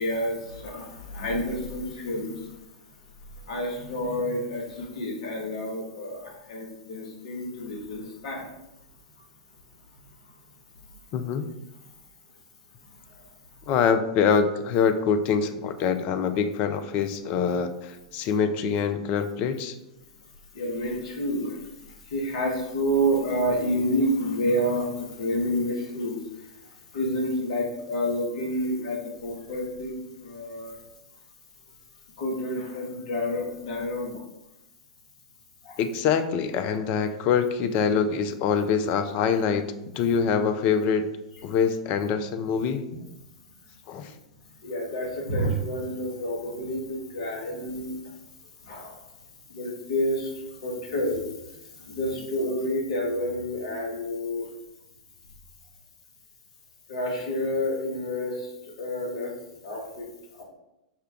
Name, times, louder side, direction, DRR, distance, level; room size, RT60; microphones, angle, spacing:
voice 1, 0.0-2.3 3.5-8.4 20.5-21.6 22.1-26.2 26.9-29.9 30.2-30.8 32.2-34.2 35.6-35.8 44.6-47.9 48.7-48.9 49.5-50.3 50.6-51.2 51.9-54.4 56.9-58.5 58.8-59.3 59.6-60.1 60.4-60.5, equal, 55° left, 0 dB, 1.1 m, -29 dB
voice 2, 11.1-11.5 13.7-19.8 35.8-39.6 39.9-41.1 41.4-42.9 43.9-44.1, left 6 dB, 40° left, 8 dB, 0.4 m, -24 dB
5.6 x 2.2 x 3.5 m, 0.91 s
figure-of-eight pair, 95°, 4 cm